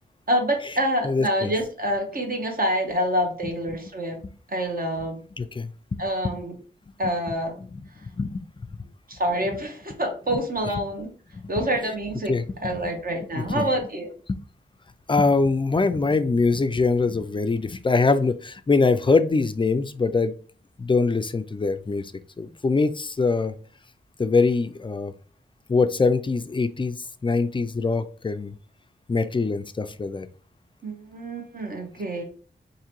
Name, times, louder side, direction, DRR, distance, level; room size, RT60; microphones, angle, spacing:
voice 1, 0.3-4.2 4.5-5.2 6.0-6.5 7.0-7.5 9.1-11.1 11.5-12.3 12.6-14.1 30.8-32.2, equal, 50° right, 3 dB, 1.1 m, -26 dB
voice 2, 1.0-1.5 3.4-3.5 4.2-4.3 5.4-6.4 7.0-7.1 7.7-8.4 10.3-10.4 11.3-11.4 12.3-12.9 13.3-13.7 14.3-14.4 15.1-20.3 20.8-22.1 22.4-23.5 24.2-25.1 25.7-28.5 29.1-30.3, left 4 dB, 25° left, 11 dB, 0.3 m, -23 dB
4.9 x 2.6 x 2.9 m, 0.41 s
wide cardioid pair, 110°, 20 cm